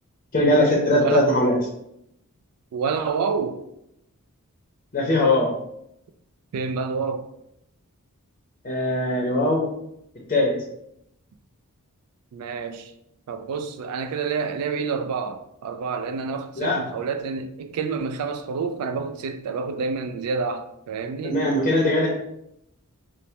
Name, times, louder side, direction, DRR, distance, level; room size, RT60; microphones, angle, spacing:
voice 1, 0.3-1.5 4.9-5.5 8.6-9.6 10.3-10.5 16.6-16.8 21.2-22.1, left 1 dB, 35° left, 0.5 m, -20 dB
voice 2, 0.9-1.3 2.7-3.6 6.5-7.3 12.3-12.9 13.3-21.4, right 5 dB, 80° right, 0.3 m, -28 dB
3.2 x 2.0 x 2.7 m
head